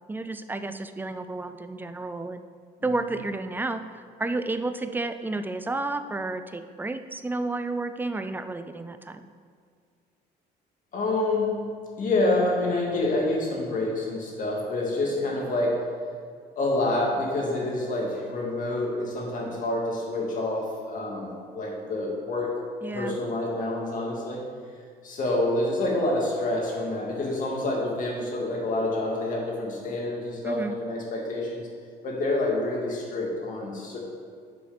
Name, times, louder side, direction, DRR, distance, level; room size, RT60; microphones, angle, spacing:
voice 1, 0.1-2.4 2.8-9.3 22.8-23.2 30.4-30.7, right 2 dB, 10° right, 10 dB, 0.4 m, -31 dB
voice 2, 10.9-11.5 12.0-15.8 16.6-22.5 22.9-24.4 25.0-31.7 32.0-34.0, left 2 dB, 50° left, -2 dB, 2.1 m, -27 dB
6.9 x 4.7 x 6.0 m, 2.1 s
cardioid pair, 110°, 17 cm